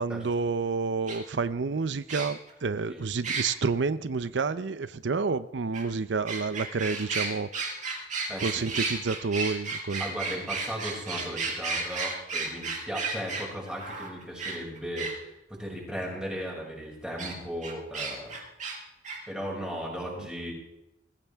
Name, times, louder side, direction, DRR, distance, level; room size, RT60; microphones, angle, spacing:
voice 1, 0.0-7.7 8.4-10.0, right 4 dB, 85° right, 14 dB, 0.6 m, -29 dB
sound 1, 1.1-1.2 2.1-2.5 3.2-3.5 5.7-5.8 6.3-15.1 17.2-17.3 17.6-18.8 19.0-19.2, right 4 dB, 45° right, 4.9 m, -32 dB
voice 2, 8.3-8.7 10.0-18.3 19.3-20.5, equal, 5° right, -3 dB, 5.9 m, -36 dB
22.0 x 15.5 x 3.5 m, 0.94 s
head